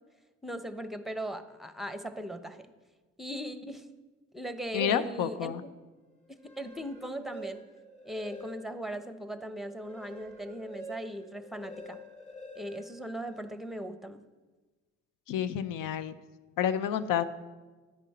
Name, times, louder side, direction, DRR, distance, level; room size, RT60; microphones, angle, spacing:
voice 1, 0.4-2.7 3.2-3.9 4.3-5.5 6.3-7.6 8.0-12.0 12.5-14.2, equal, ahead, 10 dB, 1.0 m, -38 dB
voice 2, 4.7-5.6 15.3-16.1 16.6-17.2, left 9 dB, 65° left, 14 dB, 0.8 m, -29 dB
sound 1, 6.3-8.9 9.4-13.7, equal, 20° left, 3.2 m, -48 dB
11.0 x 9.8 x 4.4 m, 1.3 s
hypercardioid pair, 45°, 34 cm